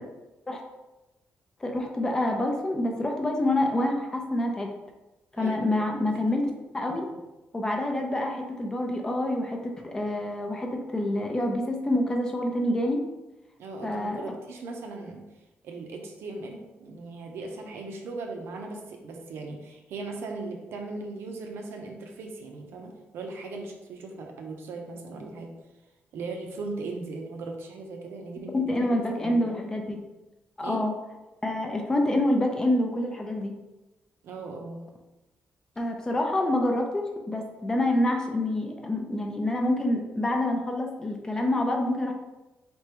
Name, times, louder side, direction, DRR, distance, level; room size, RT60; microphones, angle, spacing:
voice 1, 1.6-4.7 5.4-7.1 7.5-9.6 9.8-13.0 13.8-14.2 28.5-30.0 30.6-30.9 31.4-33.5 35.8-42.1, left 1 dB, 15° left, 2 dB, 0.5 m, -27 dB
voice 2, 5.4-6.2 13.6-15.2 15.6-25.5 26.1-29.4 30.6-30.8 34.2-34.9, right 3 dB, 80° right, 2 dB, 0.7 m, -38 dB
4.1 x 3.5 x 2.9 m, 1.1 s
wide cardioid pair, 180°, 4 cm